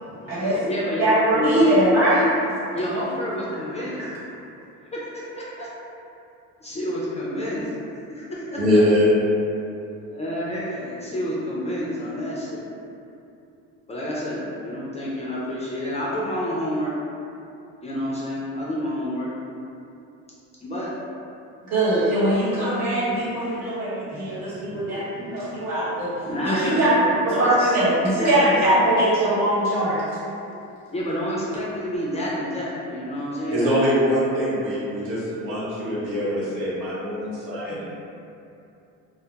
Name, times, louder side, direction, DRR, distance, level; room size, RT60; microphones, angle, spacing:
voice 1, 0.1-1.0 1.3-1.6 2.7-4.0 4.9-5.7 6.6-7.7 8.2-8.8 10.1-12.6 13.9-16.9 17.8-19.3 20.6-20.9 24.1-24.3 24.7-25.0 25.4-25.5 26.2-28.8 30.9-33.7 37.7-37.8, equal, 20° left, -7 dB, 0.4 m, -29 dB
voice 2, 1.0-2.3 2.7-2.8 21.6-26.1 26.4-26.9 27.2-30.0, right 1 dB, 50° right, -10 dB, 1.1 m, -21 dB
voice 3, 8.6-9.1 33.5-37.8, equal, 80° right, -8 dB, 0.8 m, -22 dB
2.1 x 2.1 x 2.8 m, 2.7 s
supercardioid pair, 95°, 34 cm